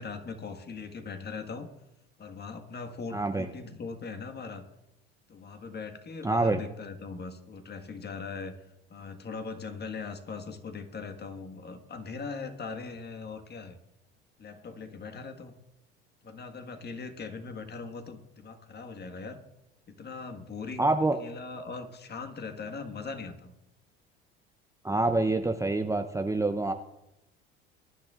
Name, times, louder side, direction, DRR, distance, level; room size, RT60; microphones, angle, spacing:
voice 1, 0.0-1.7 2.2-4.7 5.3-8.5 8.9-13.8 14.4-15.5 16.2-19.4 19.9-20.9 21.2-23.6, left 4 dB, 35° left, 6 dB, 1.6 m, -40 dB
voice 2, 3.1-3.5 6.2-6.6 20.8-21.2 24.8-26.7, right 2 dB, 10° right, 6 dB, 0.7 m, -26 dB
22.5 x 10.5 x 2.5 m, 0.88 s
hypercardioid pair, 70°, 30 cm